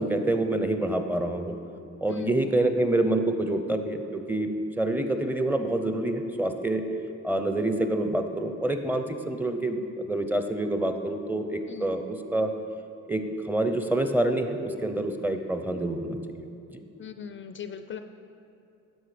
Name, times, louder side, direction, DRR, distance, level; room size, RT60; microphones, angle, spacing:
voice 1, 0.0-1.5 2.0-4.5 4.8-6.8 7.2-12.5 13.1-16.2 16.7-16.8, right 1 dB, 5° right, 6 dB, 0.6 m, -27 dB
voice 2, 2.1-2.4 11.7-12.0 17.0-18.0, left 8 dB, 40° left, 9 dB, 0.4 m, -40 dB
12.5 x 4.6 x 5.0 m, 2.7 s
cardioid pair, 90°, 30 cm